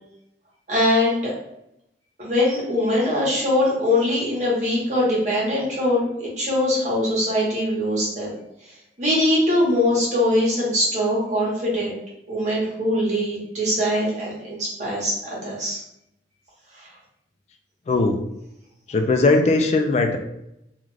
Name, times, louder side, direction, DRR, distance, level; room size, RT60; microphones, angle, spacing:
voice 1, 0.7-1.4 2.2-8.4 9.0-12.0 12.3-15.8 16.8-16.9, left 1 dB, 40° right, -6 dB, 1.1 m, -22 dB
voice 2, 17.9-18.2 18.9-20.2, left 3 dB, 40° left, 5 dB, 0.3 m, -19 dB
2.4 x 2.4 x 3.1 m, 0.80 s
head